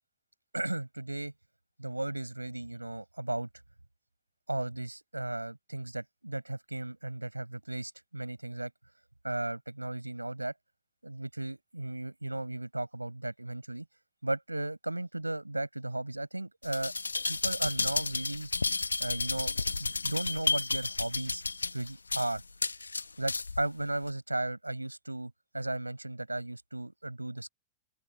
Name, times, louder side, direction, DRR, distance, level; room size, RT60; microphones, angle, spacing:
voice 1, 0.5-1.3 1.8-3.5 4.5-8.7 9.2-10.5 11.0-13.9 14.2-16.9 17.3-18.5 19.0-19.5 19.8-21.4 21.7-22.4 23.2-27.5, right 2 dB, 85° right, 6.3 m, -35 dB
sound 1, 16.6-23.6 24.1-24.2, left 3 dB, 80° left, 1.3 m, -32 dB
open air
figure-of-eight pair, 90°, 0 cm